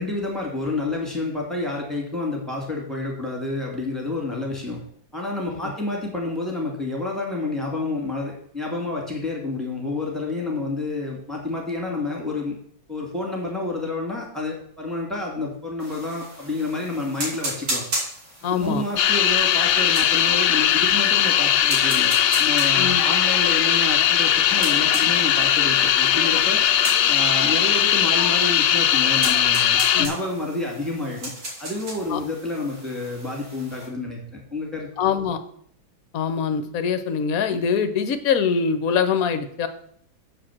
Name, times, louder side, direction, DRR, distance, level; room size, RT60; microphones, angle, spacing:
voice 1, 0.0-4.8 5.1-12.6 12.9-17.8 18.5-22.1 22.4-26.6 27.1-31.3 31.6-34.2 34.5-34.9, left 2 dB, ahead, -2 dB, 2.4 m, -29 dB
sound 1, 15.8-33.9, right 1 dB, 85° right, 3.5 m, -36 dB
voice 2, 18.4-18.8 22.8-23.0 29.9-30.1 32.1-32.2 35.0-35.4 36.1-39.7, left 6 dB, 60° left, 10 dB, 1.0 m, -23 dB
sound 2, 19.0-30.1, left 10 dB, 80° left, 0.7 m, -19 dB
7.7 x 5.0 x 7.3 m, 0.64 s
omnidirectional pair, 2.1 m